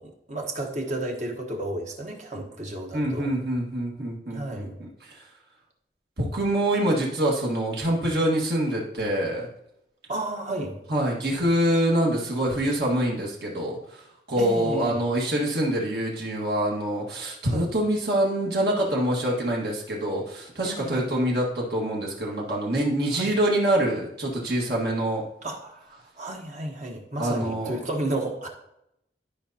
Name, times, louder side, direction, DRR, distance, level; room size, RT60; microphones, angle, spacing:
voice 1, 0.0-3.3 4.3-4.7 10.1-10.8 14.4-15.0 17.5-17.7 20.6-21.3 23.1-23.3 25.4-28.5, right 1 dB, 40° right, 1 dB, 1.2 m, -32 dB
voice 2, 2.9-5.3 6.2-9.5 10.9-25.2 27.2-27.8, right 1 dB, 60° right, -3 dB, 1.7 m, -25 dB
12.0 x 5.2 x 2.8 m, 0.79 s
head